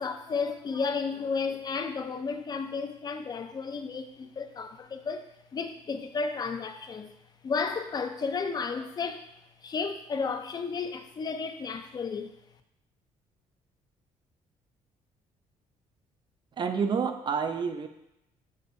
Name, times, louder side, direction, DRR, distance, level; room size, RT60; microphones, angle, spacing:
voice 1, 0.0-5.3 5.5-7.1 7.4-9.3 9.6-12.3, left 5 dB, 30° left, 8 dB, 0.4 m, -33 dB
voice 2, 16.6-17.9, right 6 dB, 35° right, 7 dB, 0.4 m, -28 dB
6.3 x 2.6 x 2.5 m, 0.83 s
cardioid pair, 105°, 13 cm